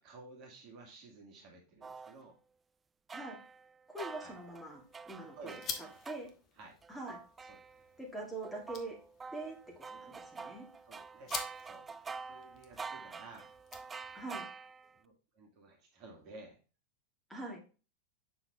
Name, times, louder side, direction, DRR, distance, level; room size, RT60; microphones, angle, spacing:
voice 1, 0.0-2.4 4.2-4.4 5.4-6.0 6.5-6.7 7.5-7.6 10.8-11.3 11.6-11.9 12.3-13.5 14.9-16.6, right 3 dB, 40° right, 0 dB, 2.1 m, -54 dB
sound 1, 1.8-2.1 3.1-6.2 6.8-8.0 8.4-14.9, right 5 dB, 15° right, 0.3 m, -47 dB
voice 2, 3.9-5.6 6.1-6.3 6.9-7.2 8.0-9.0 9.3-9.6 9.9-10.7 14.1-14.5 17.3-17.6, right 2 dB, ahead, -2 dB, 2.6 m, -43 dB
sound 2, 4.0-14.4, left 7 dB, 35° left, 1.2 m, -49 dB
7.1 x 5.8 x 3.5 m, 0.34 s
figure-of-eight pair, 90°, 0 cm